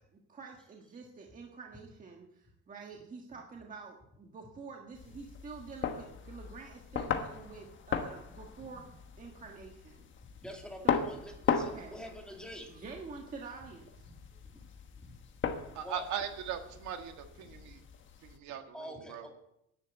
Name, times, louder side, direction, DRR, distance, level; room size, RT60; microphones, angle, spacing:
voice 1, 0.1-8.8 9.2-10.0 10.8-11.0 11.5-12.0 12.7-14.1, right 4 dB, 25° right, 1 dB, 1.5 m, -48 dB
sound 1, 4.9-18.4, left 6 dB, 40° left, 1.3 m, -38 dB
voice 2, 10.4-12.8 14.1-14.2 14.4-14.7 14.9-15.2 15.8-16.0 18.7-19.3, equal, 5° left, 1 dB, 2.3 m, -46 dB
voice 3, 15.7-17.8 18.2-19.3, right 8 dB, 75° right, 5 dB, 1.8 m, -39 dB
10.5 x 10.0 x 8.0 m, 0.81 s
cardioid pair, 150°, 29 cm